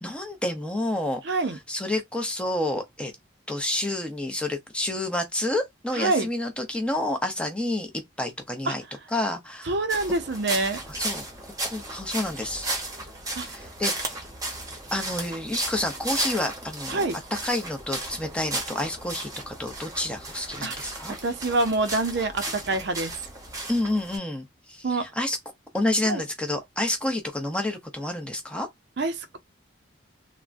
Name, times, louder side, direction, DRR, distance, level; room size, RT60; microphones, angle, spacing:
voice 1, 0.0-1.2 1.5-3.1 3.5-7.9 8.2-8.8 9.1-9.7 10.9-11.2 11.6-12.7 13.4-14.1 14.9-17.0 17.3-21.1 23.7-25.4 25.7-28.7, left 1 dB, 5° left, 0.6 m, -29 dB
voice 2, 1.2-1.6 5.9-6.3 8.7-8.8 9.6-10.8 13.4-13.5 16.9-17.2 20.6-20.7 21.2-23.1 24.8-25.1 26.1-26.2 29.0-29.4, right 3 dB, 60° right, 0.5 m, -26 dB
sound 1, 9.9-24.2, right 2 dB, 20° right, 0.8 m, -35 dB
3.5 x 2.1 x 2.4 m
head